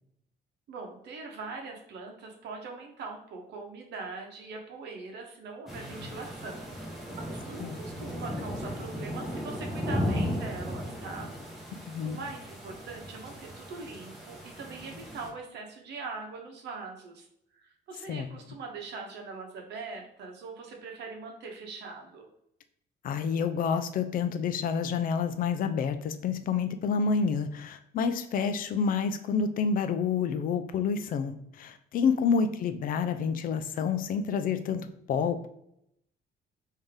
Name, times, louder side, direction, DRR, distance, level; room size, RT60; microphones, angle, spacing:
voice 1, 0.7-11.3 12.0-17.3 17.5-22.3 32.0-32.4, right 4 dB, 75° right, 2 dB, 0.9 m, -42 dB
sound 1, 5.7-15.3, equal, ahead, 0.7 m, -36 dB
voice 2, 11.9-12.2 18.1-18.3 23.0-35.5, left 6 dB, 50° left, 9 dB, 0.4 m, -28 dB
3.5 x 2.7 x 3.2 m, 0.77 s
cardioid pair, 165°, 18 cm